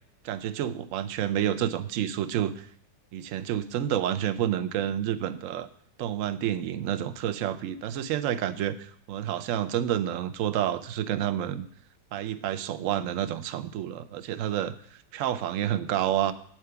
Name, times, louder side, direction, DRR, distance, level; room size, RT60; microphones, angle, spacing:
voice 1, 0.2-2.7 3.1-5.7 6.0-11.7 12.1-16.3, right 11 dB, 70° right, 11 dB, 0.7 m, -29 dB
8.8 x 4.7 x 6.7 m, 0.62 s
omnidirectional pair, 1.9 m